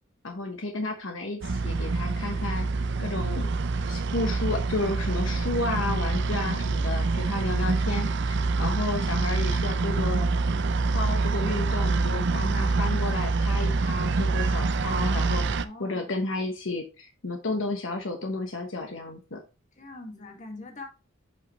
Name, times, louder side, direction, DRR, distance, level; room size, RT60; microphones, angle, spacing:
voice 1, 0.2-2.7 3.0-3.5 3.8-10.3 10.9-19.4, left 2 dB, 70° left, 1.2 m, -32 dB
sound 1, 1.4-15.6, right 3 dB, 60° right, 0.5 m, -26 dB
voice 2, 15.6-16.1 19.8-20.9, left 2 dB, 40° left, 2.0 m, -42 dB
8.0 x 5.2 x 3.2 m
head